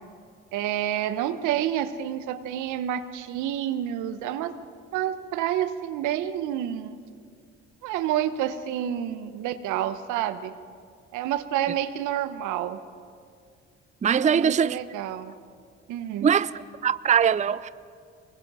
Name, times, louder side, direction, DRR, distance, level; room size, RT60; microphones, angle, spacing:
voice 1, 0.5-4.5 4.9-7.0 7.8-10.5 11.1-12.8 14.2-15.3 15.9-16.3, right 11 dB, 80° right, 1.0 m, -29 dB
voice 2, 14.0-14.8 16.2-17.7, right 7 dB, 25° right, 0.5 m, -22 dB
24.0 x 20.5 x 5.5 m
supercardioid pair, 55°, 30 cm